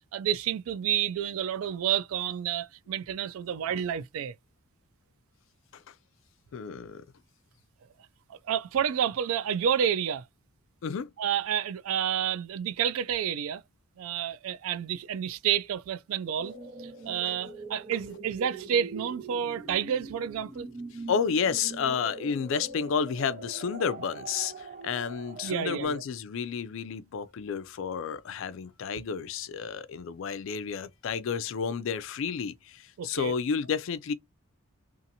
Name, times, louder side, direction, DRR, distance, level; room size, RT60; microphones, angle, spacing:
voice 1, 0.1-4.3 8.3-10.2 11.2-13.6 14.0-16.5 16.8-20.7 25.4-26.0 33.0-33.3, right 9 dB, 75° right, 0.3 m, -29 dB
voice 2, 6.5-7.0 10.8-11.1 21.1-34.1, left 6 dB, 60° left, 0.3 m, -31 dB
sound 1, 16.4-25.9, right 3 dB, 40° right, 0.8 m, -43 dB
2.7 x 2.5 x 2.6 m
head